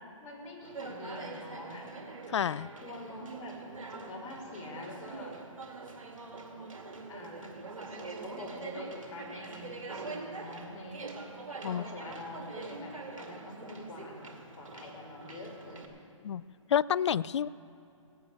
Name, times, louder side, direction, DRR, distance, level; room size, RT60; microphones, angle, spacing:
voice 1, 0.2-2.1 2.8-3.6 3.9-5.4 7.1-7.6 7.9-11.0 11.6-15.9 17.2-17.4, left 2 dB, 25° left, -6 dB, 3.9 m, -45 dB
Conversation, 0.6-15.8, right 3 dB, 90° right, 2.4 m, -44 dB
voice 2, 2.3-2.7 11.6-11.8 16.2-16.4 16.7-17.5, left 8 dB, 60° left, 20 dB, 0.4 m, -29 dB
17.5 x 8.8 x 8.2 m, 2.7 s
hypercardioid pair, 150°, 17 cm